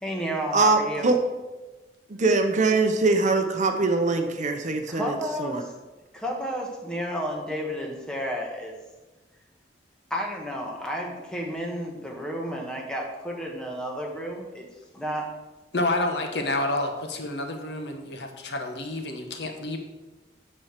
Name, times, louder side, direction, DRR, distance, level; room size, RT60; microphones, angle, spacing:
voice 1, 0.0-1.2 4.9-5.7 6.1-8.8 10.1-14.7 14.9-15.3, equal, 5° left, -1 dB, 1.3 m, -31 dB
voice 2, 0.5-1.2 2.2-5.6, right 3 dB, 40° right, 6 dB, 0.7 m, -23 dB
voice 3, 15.7-19.8, left 2 dB, 70° left, 4 dB, 1.1 m, -29 dB
9.0 x 4.3 x 6.5 m, 1.2 s
head